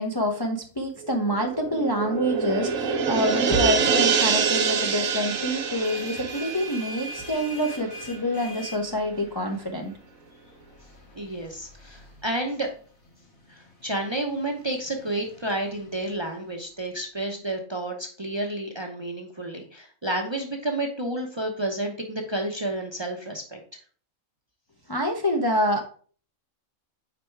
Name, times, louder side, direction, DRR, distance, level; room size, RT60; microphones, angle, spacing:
voice 1, 0.0-9.9 24.9-25.8, equal, 25° left, 1 dB, 0.5 m, -27 dB
sound 1, 1.0-8.0 8.3-8.4, right 6 dB, 75° right, 1.2 m, -26 dB
sound 2, 5.8-16.9, equal, 90° left, 2.2 m, -45 dB
voice 2, 11.1-12.7 13.5-23.6, right 1 dB, 25° right, 2 dB, 0.7 m, -30 dB
5.0 x 4.4 x 4.5 m, 0.42 s
omnidirectional pair, 1.4 m